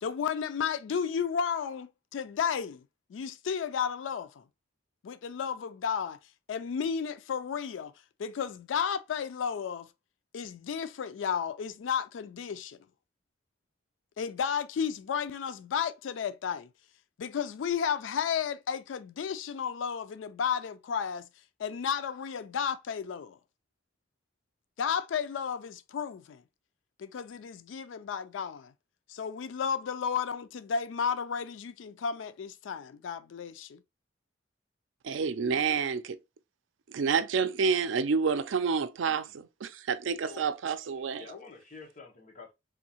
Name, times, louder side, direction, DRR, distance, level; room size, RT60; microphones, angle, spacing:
voice 1, 0.0-2.8 3.1-4.4 5.0-6.2 6.5-7.9 8.2-9.9 10.3-12.8 14.2-16.7 17.2-21.2 21.6-23.4 24.8-26.4 27.0-28.7 29.1-33.8, left 7 dB, 85° left, 0.4 m, -33 dB
voice 2, 35.0-36.2 36.9-41.2, right 5 dB, 90° right, 0.4 m, -29 dB
voice 3, 41.1-42.5, left 4 dB, 40° left, 1.2 m, -48 dB
3.8 x 2.7 x 2.8 m
head